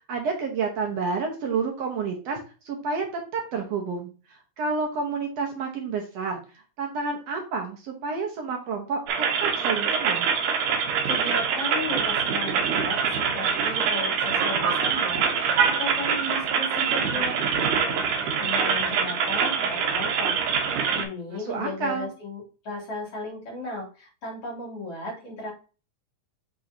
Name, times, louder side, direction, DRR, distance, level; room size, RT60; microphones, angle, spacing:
voice 1, 0.1-2.4 2.7-9.0 9.4-10.3 21.3-22.1, right 4 dB, 65° right, 1 dB, 2.1 m, -30 dB
sound 1, 9.1-21.0, right 6 dB, 80° right, 2.5 m, -24 dB
voice 2, 10.7-20.3 20.6-25.5, left 2 dB, 50° left, -4 dB, 3.8 m, -36 dB
6.5 x 5.5 x 2.8 m, 0.35 s
omnidirectional pair, 3.5 m